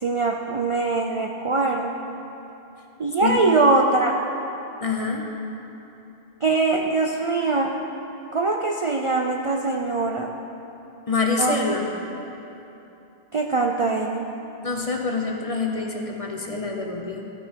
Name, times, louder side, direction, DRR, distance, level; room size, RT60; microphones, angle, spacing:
voice 1, 0.0-2.0 3.0-4.2 6.4-7.7 8.3-10.3 11.4-11.6 13.3-14.3, right 3 dB, 40° right, 1 dB, 0.5 m, -22 dB
voice 2, 4.8-5.3 11.1-11.8 14.6-17.3, left 4 dB, 35° left, 1 dB, 0.9 m, -26 dB
15.5 x 6.1 x 4.5 m, 3.0 s
omnidirectional pair, 1.0 m